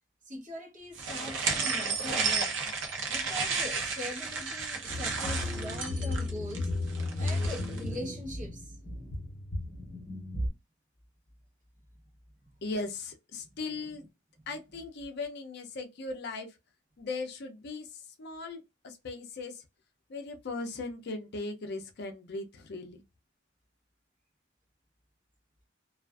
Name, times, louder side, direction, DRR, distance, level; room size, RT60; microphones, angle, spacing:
voice 1, 0.2-2.5 3.1-6.7 7.2-8.8 12.4-12.5, left 1 dB, 40° right, 1.0 m, -41 dB
sound 1, 1.0-7.8, right 4 dB, 65° right, 0.6 m, -32 dB
sound 2, 4.9-10.5, left 2 dB, 25° left, 1.1 m, -34 dB
voice 2, 12.6-14.0 14.5-16.5 17.0-19.6 20.1-23.0, left 3 dB, 55° left, 0.5 m, -38 dB
2.4 x 2.3 x 2.3 m
head